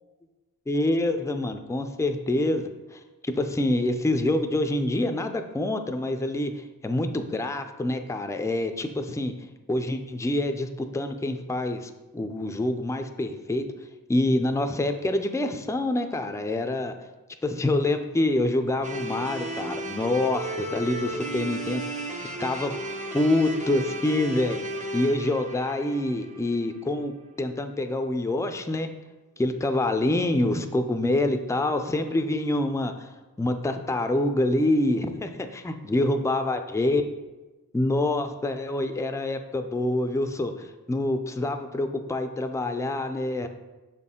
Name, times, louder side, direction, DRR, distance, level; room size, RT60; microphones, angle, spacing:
voice 1, 0.7-9.3 9.7-13.6 14.1-16.9 17.4-22.0 22.4-22.7 23.1-24.6 24.9-27.1 27.4-28.9 29.4-33.1 33.4-37.0 37.7-43.5, left 1 dB, 10° left, 6 dB, 0.4 m, -26 dB
sound 1, 18.8-26.9, right 2 dB, 20° right, 0.7 m, -34 dB
6.2 x 4.2 x 3.6 m, 1.2 s
wide cardioid pair, 55°, 36 cm